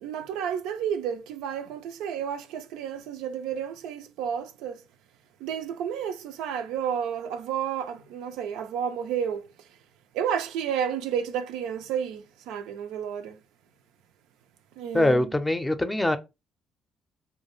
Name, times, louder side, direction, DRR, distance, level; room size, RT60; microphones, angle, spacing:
voice 1, 0.0-4.8 5.4-9.4 10.1-13.4 14.8-15.2, right 8 dB, 85° right, 0.3 m, -31 dB
voice 2, 14.9-16.2, left 1 dB, 15° left, 0.5 m, -23 dB
2.2 x 2.2 x 3.1 m
supercardioid pair, 60°, 0 cm